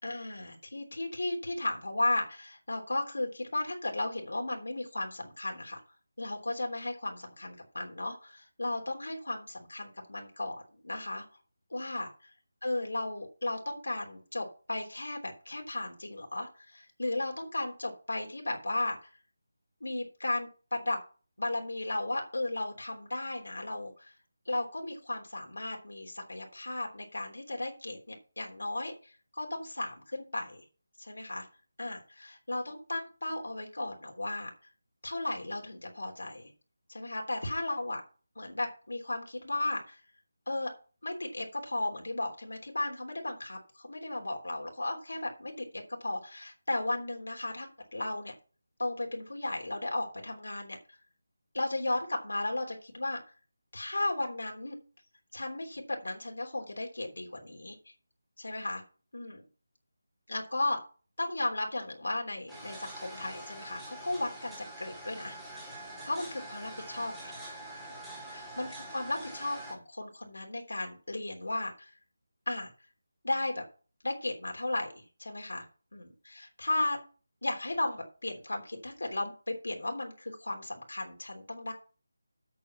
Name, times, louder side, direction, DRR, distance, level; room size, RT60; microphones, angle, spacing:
voice 1, 0.0-5.8 6.2-11.2 11.7-12.1 12.6-19.0 19.8-21.0 21.4-24.1 24.4-30.6 31.0-31.5 31.8-34.5 35.0-36.5 36.9-38.0 38.3-40.0 40.5-40.7 41.0-48.3 48.8-51.0 51.5-53.2 53.7-54.8 55.3-57.9 58.4-58.8 59.1-59.5 60.3-60.8 61.2-65.4 66.0-67.3 68.3-71.9 72.4-72.7 73.2-73.6 74.0-75.6 75.9-77.0 77.4-81.7, left 2 dB, 80° left, 2 dB, 3.3 m, -35 dB
sound 1, 62.5-69.7, right 1 dB, 5° right, 2.6 m, -45 dB
8.7 x 6.6 x 5.8 m, 0.36 s
figure-of-eight pair, 165°, 0 cm